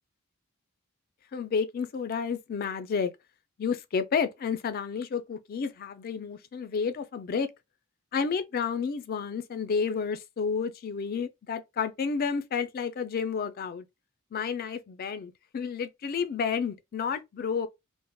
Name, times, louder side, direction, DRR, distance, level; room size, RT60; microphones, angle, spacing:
voice 1, 1.3-3.1 3.6-7.5 8.1-13.9 14.3-17.7, left 6 dB, 45° left, 0.3 m, -31 dB
3.3 x 2.1 x 2.2 m
head